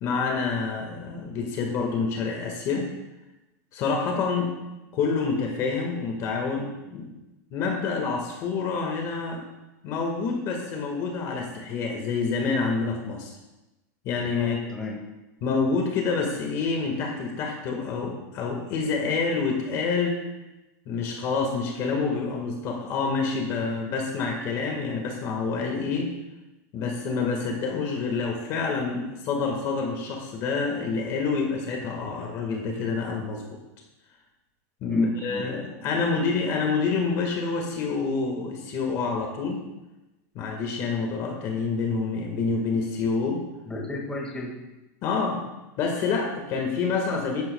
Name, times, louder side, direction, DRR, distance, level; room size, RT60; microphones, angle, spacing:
voice 1, 0.0-2.9 3.7-7.2 7.5-9.4 9.8-13.3 14.0-14.6 15.4-20.2 20.9-26.1 26.7-33.6 34.8-39.6 40.4-43.4 45.0-45.4 45.8-47.4, left 4 dB, 35° left, 1 dB, 1.7 m, -27 dB
voice 2, 14.3-15.0 34.9-35.5 43.7-44.6, left 2 dB, 10° left, -2 dB, 1.8 m, -33 dB
13.5 x 11.5 x 2.3 m, 1.0 s
supercardioid pair, 170°, 9 cm